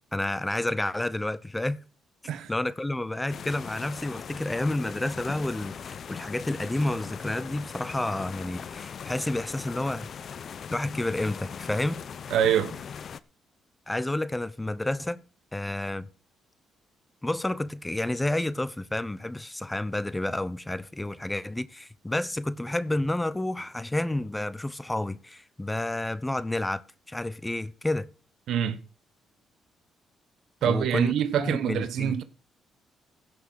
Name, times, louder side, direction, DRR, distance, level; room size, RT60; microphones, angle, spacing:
voice 1, 0.1-1.8 2.5-10.1 10.7-12.0 13.9-15.2 15.5-16.1 17.2-26.8 27.1-28.1 30.6-32.2, left 1 dB, 10° left, 0.8 m, -30 dB
sound 1, 3.3-13.2, left 7 dB, 55° left, 0.7 m, -40 dB
voice 2, 12.3-12.7 28.5-28.8 30.6-32.2, right 9 dB, 75° right, 1.1 m, -25 dB
16.5 x 6.1 x 6.4 m
cardioid pair, 90°, 0 cm